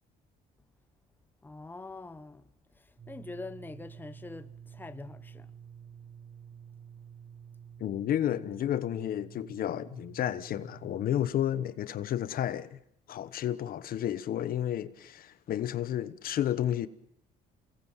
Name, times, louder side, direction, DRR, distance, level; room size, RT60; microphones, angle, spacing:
voice 1, 1.4-5.5, left 3 dB, 10° left, 1.1 m, -45 dB
sound 1, 3.0-11.3, right 8 dB, 30° right, 7.8 m, -50 dB
voice 2, 7.8-12.8 13.1-16.9, left 11 dB, 60° left, 1.1 m, -31 dB
28.5 x 19.0 x 7.3 m
cardioid pair, 110°, 17 cm